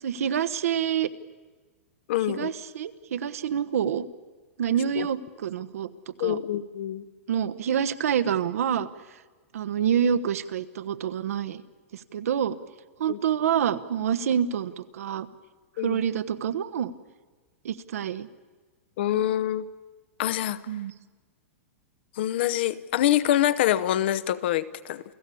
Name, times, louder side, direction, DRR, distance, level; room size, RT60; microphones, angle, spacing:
voice 1, 0.0-1.1 2.3-4.1 4.6-5.9 6.2-6.4 7.3-8.9 9.5-11.6 11.9-12.6 13.0-15.3 15.8-16.9 17.6-18.3 20.7-20.9, right 8 dB, 80° right, 12 dB, 1.2 m, -27 dB
voice 2, 2.1-2.5 5.0-5.1 6.2-7.0 13.1-13.2 15.8-16.0 19.0-19.6 20.2-20.6 22.2-25.0, left 12 dB, 45° left, 15 dB, 0.8 m, -25 dB
29.0 x 16.5 x 8.5 m, 1.4 s
supercardioid pair, 175°, 8 cm